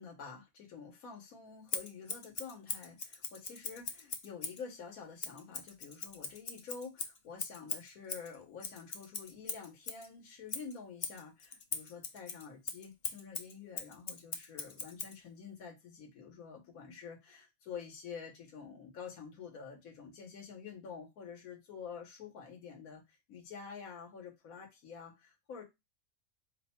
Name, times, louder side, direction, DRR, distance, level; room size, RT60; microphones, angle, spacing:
voice 1, 0.0-25.6, left 6 dB, 75° left, 1.5 m, -48 dB
Scissors, 1.7-4.6 5.2-10.1 10.5-15.2, left 5 dB, 50° left, 0.5 m, -41 dB
4.8 x 2.3 x 4.1 m
omnidirectional pair, 1.5 m